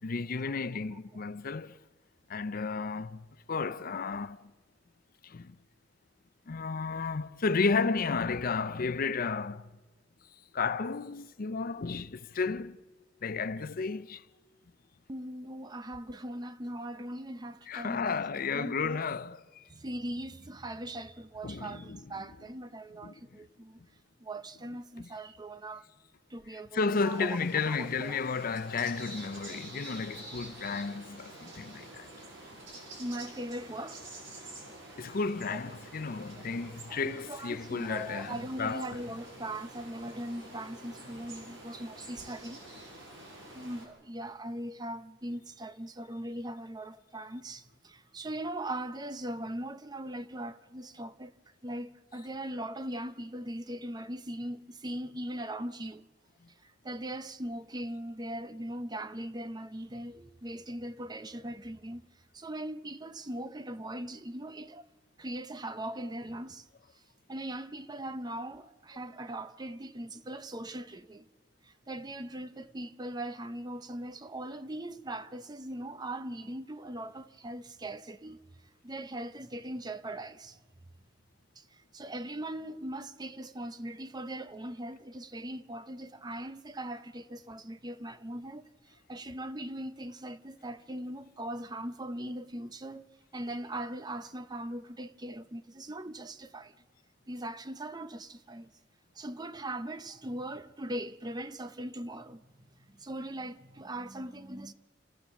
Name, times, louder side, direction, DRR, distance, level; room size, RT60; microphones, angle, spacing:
voice 1, 0.0-1.8 2.3-4.5 5.2-5.6 6.5-9.7 10.5-12.8 13.2-14.2 17.7-19.6 21.4-22.2 23.0-23.5 25.0-25.1 26.5-32.1 35.0-39.0, left 4 dB, 50° left, 0.6 m, -33 dB
voice 2, 15.1-18.2 18.5-19.0 19.7-23.8 24.2-25.8 26.3-27.4 27.7-28.2 33.0-34.1 36.9-42.9 43.5-51.3 51.6-56.0 56.6-62.0 62.3-64.8 65.2-66.7 67.3-71.3 71.6-78.4 78.8-80.6 81.6-93.1 93.3-96.7 97.3-98.7 99.2-104.7, right 1 dB, 20° right, 0.7 m, -40 dB
sound 1, 26.9-43.9, right 1 dB, 70° right, 6.3 m, -48 dB
28.0 x 15.0 x 7.0 m
head